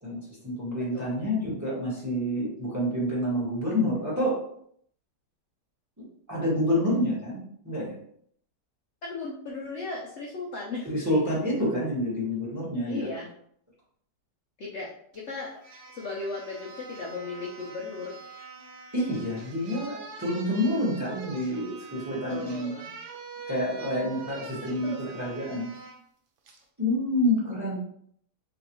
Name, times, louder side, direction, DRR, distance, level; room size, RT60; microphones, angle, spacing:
voice 1, 0.0-4.4 6.0-7.9 10.8-13.1 18.9-22.7 23.5-25.7 26.8-27.7, left 1 dB, 10° right, -7 dB, 1.1 m, -28 dB
voice 2, 9.0-10.9 12.9-13.3 14.6-15.6 15.9-18.1 22.1-22.9 24.8-25.5, left 3 dB, 70° left, -2 dB, 0.6 m, -37 dB
sound 1, 15.1-15.2 15.6-26.0 26.5-26.6, right 4 dB, 70° right, 0.7 m, -44 dB
3.4 x 3.0 x 3.0 m, 0.66 s
omnidirectional pair, 1.9 m